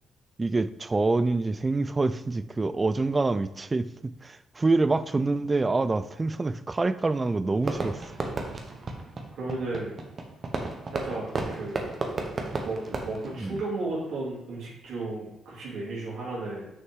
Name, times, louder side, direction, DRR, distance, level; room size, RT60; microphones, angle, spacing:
voice 1, 0.4-8.0 13.4-13.6, right 3 dB, 25° right, 14 dB, 0.3 m, -26 dB
Fireworks, 7.6-14.2, right 3 dB, 40° right, 1.0 m, -34 dB
voice 2, 9.4-10.0 10.9-11.9 12.6-16.7, right 2 dB, 80° right, -6 dB, 2.8 m, -34 dB
6.4 x 5.5 x 3.7 m, 0.87 s
cardioid pair, 90°, 0 cm